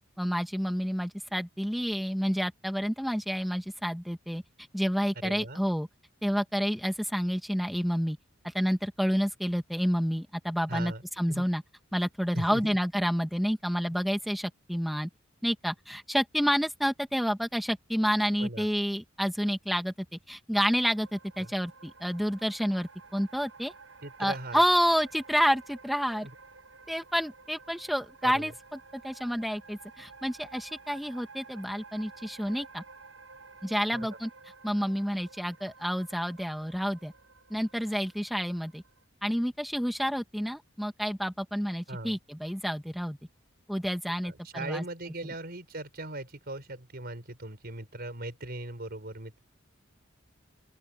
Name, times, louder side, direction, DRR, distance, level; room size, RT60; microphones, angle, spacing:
voice 1, 0.2-4.4 4.7-5.9 6.2-8.2 8.4-11.6 11.9-15.1 15.4-19.9 20.3-23.7 24.2-26.3 26.9-32.8 33.6-34.3 34.6-37.1 37.5-38.8 39.2-43.2 43.7-44.8 45.2-45.3, equal, ahead, 1.3 m, -29 dB
voice 2, 5.1-5.6 10.7-11.5 12.3-12.8 13.8-13.9 18.4-18.7 21.4-21.5 24.0-24.6 26.2-26.3 28.2-28.5 33.9-34.1 41.9-42.2 44.2-49.4, right 1 dB, 50° right, 4.9 m, -39 dB
sound 1, 20.8-39.0, right 4 dB, 85° right, 6.1 m, -52 dB
open air
head